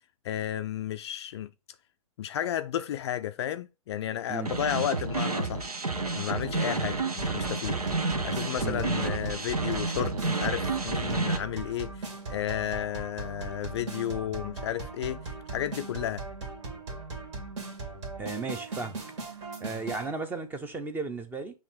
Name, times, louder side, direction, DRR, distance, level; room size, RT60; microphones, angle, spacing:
voice 1, 0.2-1.5 2.2-5.7 6.1-7.8 8.2-16.3, left 11 dB, 45° left, 0.4 m, -33 dB
voice 2, 4.3-4.9 8.6-8.8 18.2-19.0 19.6-21.6, right 4 dB, 10° right, 0.7 m, -35 dB
sound 1, 4.5-11.4, right 3 dB, 80° right, 1.2 m, -30 dB
sound 2, 7.2-20.1, right 3 dB, 55° right, 2.1 m, -39 dB
7.4 x 3.1 x 4.2 m
figure-of-eight pair, 120°, 19 cm